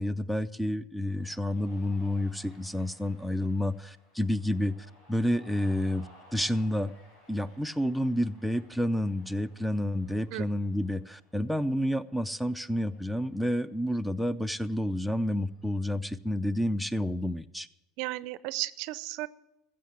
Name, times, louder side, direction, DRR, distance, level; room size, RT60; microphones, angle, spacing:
voice 1, 0.0-4.7 5.1-6.9 7.3-17.7, left 1 dB, 5° left, 17 dB, 0.5 m, -29 dB
Cheering, 1.1-15.9, equal, 80° left, 6.0 m, -60 dB
voice 2, 18.0-19.3, right 19 dB, 70° right, 17 dB, 0.5 m, -34 dB
14.0 x 7.5 x 7.5 m, 0.92 s
supercardioid pair, 95°, 0 cm